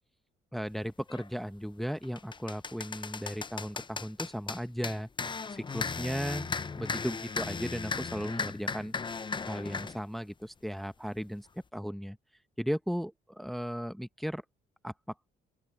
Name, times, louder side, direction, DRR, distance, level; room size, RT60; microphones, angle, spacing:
voice 1, 0.5-5.1 5.5-9.0 9.5-11.5 11.7-12.2 12.6-14.4 14.8-14.9, equal, ahead, 1.0 m, -36 dB
sound 1, 1.1-1.3 1.8-10.0, left 4 dB, 25° left, 0.6 m, -36 dB
open air
cardioid pair, 90°, 20 cm